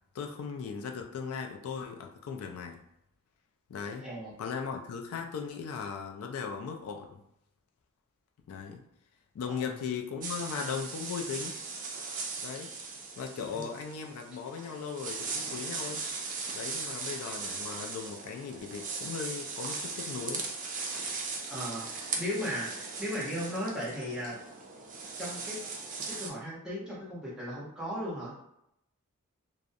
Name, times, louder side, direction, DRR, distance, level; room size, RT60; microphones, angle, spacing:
voice 1, 0.1-2.8 3.7-4.0 4.4-7.2 8.5-8.9 9.3-11.6 12.4-12.8 13.2-16.0 16.5-20.5, left 6 dB, 75° left, 3 dB, 0.3 m, -38 dB
voice 2, 4.0-4.3 9.5-9.7 13.5-13.6 21.5-24.4 25.2-25.6 26.1-28.4, equal, 5° right, -7 dB, 0.8 m, -36 dB
sound 1, 10.2-26.3, right 4 dB, 35° right, 0.3 m, -38 dB
2.4 x 2.0 x 2.5 m, 0.79 s
head